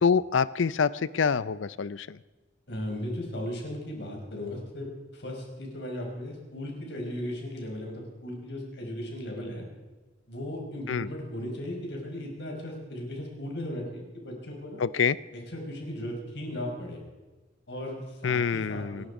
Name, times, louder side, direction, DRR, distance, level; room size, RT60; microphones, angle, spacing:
voice 1, 0.0-2.2 10.9-11.1 14.8-15.2 18.2-19.0, left 6 dB, 90° left, 18 dB, 0.5 m, -26 dB
voice 2, 2.7-4.9 5.1-9.6 10.3-14.8 15.3-17.0 17.7-19.1, left 1 dB, 65° left, 0 dB, 5.2 m, -36 dB
27.5 x 10.5 x 4.9 m, 1.2 s
head